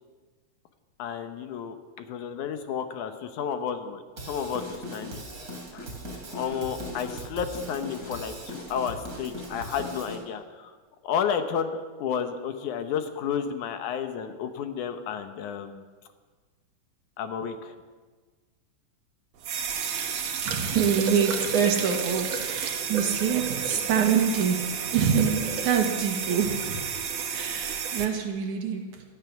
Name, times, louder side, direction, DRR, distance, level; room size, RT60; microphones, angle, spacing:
voice 1, 1.0-5.2 5.7-5.9 6.3-10.8 11.0-15.8 17.2-17.7, left 7 dB, 80° left, 7 dB, 2.5 m, -32 dB
Drum kit / Drum, 4.2-10.2, equal, 30° right, 3.1 m, -39 dB
sound 1, 19.4-28.1, right 7 dB, 55° right, 1.5 m, -31 dB
voice 2, 20.4-26.9 27.3-29.0, right 7 dB, 75° right, 2 dB, 3.2 m, -26 dB
17.0 x 13.0 x 6.0 m, 1.4 s
omnidirectional pair, 3.5 m